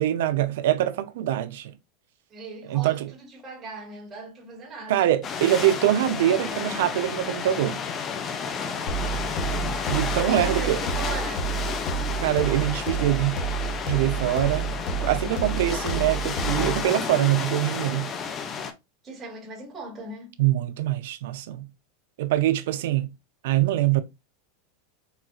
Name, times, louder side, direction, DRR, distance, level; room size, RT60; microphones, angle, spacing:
voice 1, 0.0-1.7 2.7-3.1 4.9-7.8 9.9-10.8 12.2-13.4 13.9-14.7 15.0-18.1 20.4-21.7 22.2-23.1 23.4-24.0, right 13 dB, 70° right, 0.4 m, -24 dB
voice 2, 2.3-5.1 10.3-11.5 15.2-15.6 19.0-20.4, right 2 dB, 15° right, 1.4 m, -39 dB
sound 1, 5.2-18.7, left 6 dB, 25° left, 0.4 m, -31 dB
sound 2, 8.9-16.9, right 5 dB, 55° left, 0.8 m, -30 dB
4.2 x 2.4 x 2.3 m
supercardioid pair, 155°, 0 cm